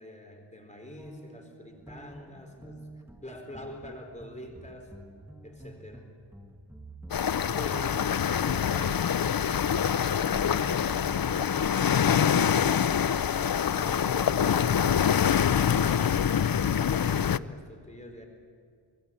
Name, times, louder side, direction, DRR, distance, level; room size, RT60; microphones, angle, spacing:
voice 1, 0.0-2.9 3.2-4.9 5.4-6.1 7.5-9.8 13.7-14.8 15.3-18.3, left 1 dB, 15° left, 3 dB, 4.1 m, -45 dB
sound 1, 1.0-16.5, right 1 dB, 5° right, 1.8 m, -49 dB
sound 2, 7.1-17.4, left 8 dB, 45° left, 0.6 m, -25 dB
25.0 x 23.0 x 8.6 m, 2.1 s
wide cardioid pair, 95°, 48 cm